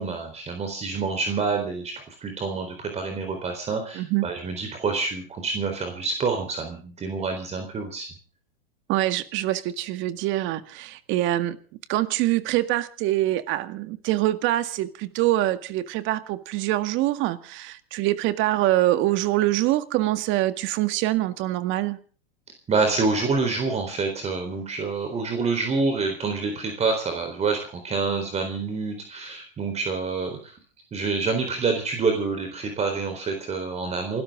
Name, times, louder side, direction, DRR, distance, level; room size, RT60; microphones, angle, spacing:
voice 1, 0.0-8.1 22.7-30.6 30.9-34.2, right 4 dB, 20° right, 5 dB, 4.0 m, -27 dB
voice 2, 8.9-11.6 11.9-22.0, right 15 dB, 40° right, 11 dB, 1.9 m, -24 dB
28.0 x 13.0 x 3.7 m, 0.41 s
hypercardioid pair, 115°, 29 cm